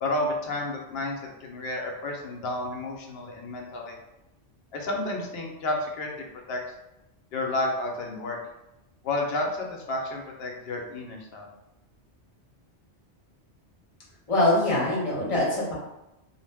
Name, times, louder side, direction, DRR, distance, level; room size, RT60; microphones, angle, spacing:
voice 1, 0.0-4.0 4.7-6.6 7.3-8.4 9.0-11.5, left 2 dB, 65° left, 0 dB, 0.8 m, -31 dB
voice 2, 14.3-15.7, left 1 dB, 35° left, -5 dB, 0.8 m, -23 dB
2.4 x 2.0 x 3.4 m, 0.91 s
omnidirectional pair, 1.2 m